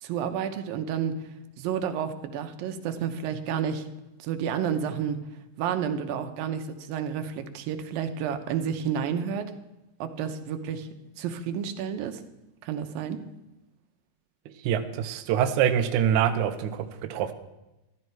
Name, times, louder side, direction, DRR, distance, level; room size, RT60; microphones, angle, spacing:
voice 1, 0.0-1.2 1.6-3.9 4.2-5.2 5.6-9.5 10.0-10.9 11.2-12.2 12.6-13.2, right 8 dB, 90° right, 7 dB, 2.7 m, -30 dB
voice 2, 14.6-17.3, right 9 dB, 70° right, 8 dB, 2.0 m, -25 dB
14.0 x 13.0 x 4.6 m, 0.96 s
omnidirectional pair, 4.0 m